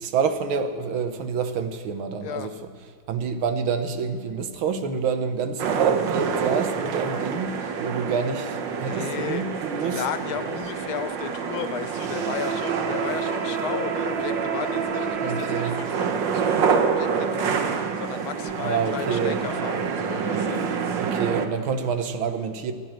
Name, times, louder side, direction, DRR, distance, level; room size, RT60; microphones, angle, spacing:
voice 1, 0.0-2.5 3.1-10.0 15.2-15.8 18.6-19.4 20.9-22.7, right 6 dB, 85° right, 9 dB, 1.8 m, -27 dB
voice 2, 2.2-2.5 7.6-7.7 8.7-21.0, left 9 dB, 85° left, 11 dB, 1.6 m, -35 dB
sound 1, 5.6-21.5, right 6 dB, 70° right, 1.6 m, -27 dB
15.0 x 10.5 x 7.6 m, 2.2 s
omnidirectional pair, 2.2 m